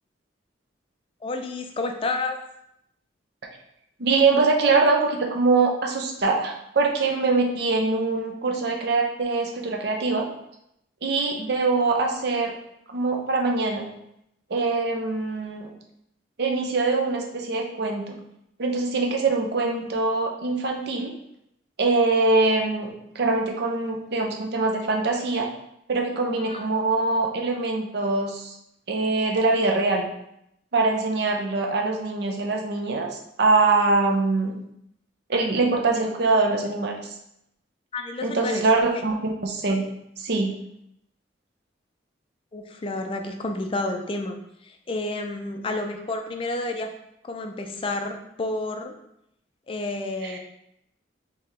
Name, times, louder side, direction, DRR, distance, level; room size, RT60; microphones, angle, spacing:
voice 1, 1.2-2.4 26.5-26.6 35.5-35.6 37.9-38.7 42.5-44.4 44.6-46.9 47.2-49.0 49.7-50.4, left 2 dB, 30° left, 5 dB, 0.4 m, -30 dB
voice 2, 4.0-10.3 11.0-12.6 12.9-13.8 14.5-15.7 16.4-18.2 18.6-21.1 21.8-22.9 23.1-25.5 25.9-28.5 28.9-30.1 30.7-33.1 33.4-34.6 35.3-36.9 38.2-39.8 40.2-40.5 50.2-50.3, right 3 dB, 60° right, 2 dB, 0.6 m, -23 dB
3.3 x 2.9 x 3.6 m, 0.78 s
head